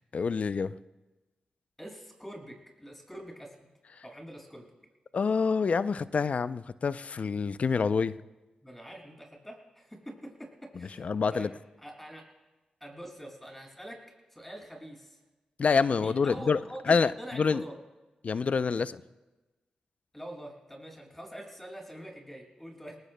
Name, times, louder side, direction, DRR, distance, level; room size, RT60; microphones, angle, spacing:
voice 1, 0.1-0.7 5.1-8.2 11.0-11.5 15.6-16.6 16.9-17.6 18.2-19.0, left 5 dB, 60° left, 15 dB, 0.5 m, -27 dB
voice 2, 1.8-3.7 4.0-4.7 8.6-11.5 11.8-12.3 12.8-14.0 14.3-15.2 16.0-17.8 20.1-23.0, equal, 10° left, -1 dB, 6.4 m, -45 dB
24.0 x 19.5 x 2.2 m, 1.1 s
supercardioid pair, 45°, 3 cm